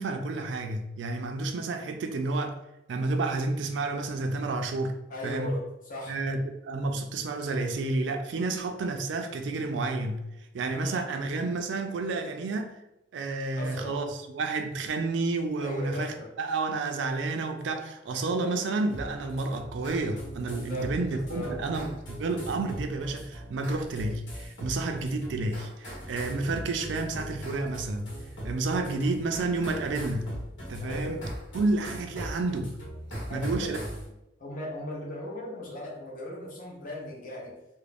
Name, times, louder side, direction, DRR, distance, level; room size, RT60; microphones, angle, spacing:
voice 1, 0.0-2.5 2.9-4.9 5.2-5.5 6.1-10.3 10.5-12.8 13.1-28.2 28.4-30.4 30.7-31.2 31.5-32.8 33.3-33.8, right 3 dB, 75° right, 5 dB, 0.4 m, -30 dB
voice 2, 5.1-6.2 10.8-11.0 13.5-13.9 15.6-16.3 20.7-21.6 30.8-31.2 33.3-33.7 34.4-37.6, left 1 dB, 45° left, -3 dB, 0.7 m, -38 dB
sound 1, 18.9-34.1, equal, 85° left, 1.0 m, -40 dB
2.4 x 2.0 x 3.3 m, 0.94 s
head